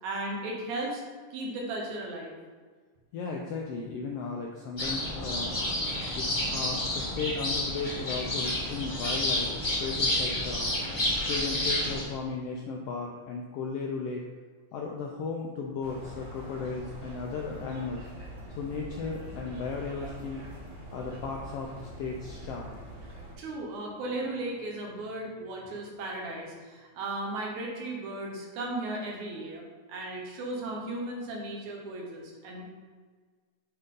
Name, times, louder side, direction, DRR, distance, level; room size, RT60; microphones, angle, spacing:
voice 1, 0.0-1.0 1.3-2.3 23.4-32.6, right 2 dB, 80° right, -1 dB, 2.6 m, -36 dB
voice 2, 3.1-9.5 9.8-10.7 11.2-14.2 14.7-18.0 18.5-20.4 20.9-22.8, left 4 dB, 85° left, 0 dB, 1.4 m, -36 dB
sound 1, 4.8-12.0, left 1 dB, 25° left, 1.1 m, -30 dB
sound 2, 15.8-23.3, equal, 45° right, 1.5 m, -44 dB
7.9 x 3.9 x 3.7 m, 1.5 s
omnidirectional pair, 3.3 m